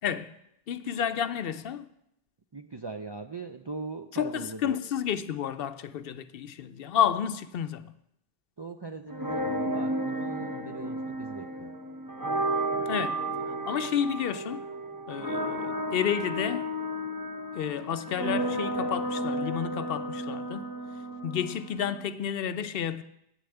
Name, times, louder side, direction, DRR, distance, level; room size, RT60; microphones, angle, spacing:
voice 1, 0.0-0.3 0.7-1.9 4.1-7.9 12.9-13.2 13.7-14.6 15.1-16.7 17.5-20.7 21.2-23.0, left 9 dB, 70° left, 0.7 m, -31 dB
voice 2, 2.5-4.8 8.6-11.7, right 3 dB, 40° right, 0.4 m, -40 dB
sound 1, 9.1-22.0, right 1 dB, 20° right, 0.9 m, -32 dB
9.0 x 6.9 x 7.8 m
omnidirectional pair, 1.0 m